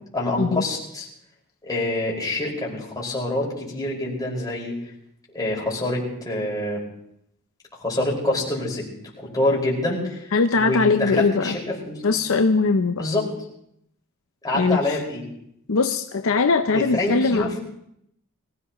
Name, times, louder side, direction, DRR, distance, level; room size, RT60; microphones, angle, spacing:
voice 1, 0.1-1.1 1.6-4.7 5.3-6.8 7.8-8.9 9.2-12.0 13.0-13.3 14.4-15.2 16.7-17.6, left 1 dB, 15° left, -4 dB, 5.2 m, -26 dB
voice 2, 10.3-11.6 12.0-13.1 14.5-15.0 15.7-17.5, left 4 dB, 65° left, 7 dB, 0.7 m, -21 dB
24.5 x 16.0 x 3.1 m, 0.74 s
head